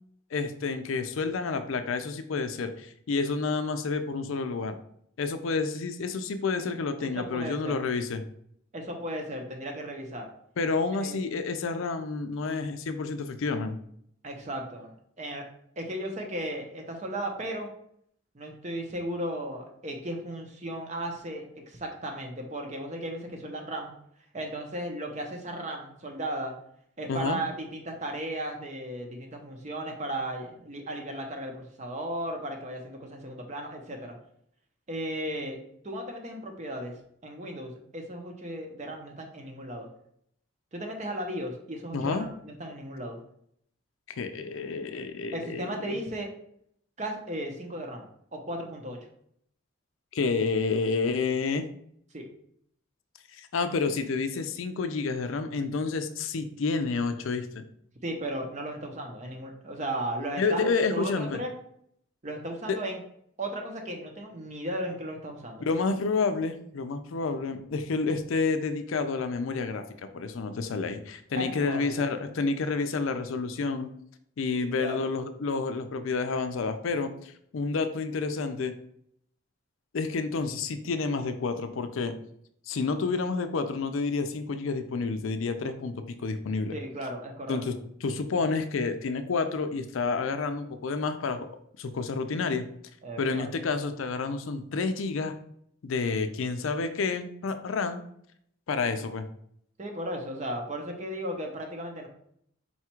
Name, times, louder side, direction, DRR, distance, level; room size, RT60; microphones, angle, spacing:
voice 1, 0.3-4.8 5.2-8.2 10.6-13.8 27.1-27.4 41.9-42.3 44.1-46.0 50.1-51.7 53.3-57.6 60.4-61.4 62.7-62.8 65.6-73.9 74.4-78.7 79.9-82.1 82.7-86.8 87.5-87.8 88.0-91.5 91.8-92.7 93.2-95.3 95.8-98.0 98.7-99.3, left 4 dB, 85° left, 9 dB, 0.5 m, -29 dB
voice 2, 7.0-7.8 8.7-10.3 11.0-11.2 14.2-15.4 15.8-17.7 18.3-23.9 24.3-26.5 27.0-34.1 34.9-35.6 35.8-36.9 37.2-39.9 40.7-43.2 45.3-46.3 47.0-49.0 52.1-52.2 58.0-61.5 62.2-63.0 63.4-65.6 71.4-72.0 74.8-75.0 86.7-87.6 93.0-93.5 99.8-102.1, right 1 dB, 35° right, 3 dB, 0.7 m, -35 dB
4.2 x 2.4 x 4.4 m, 0.68 s
head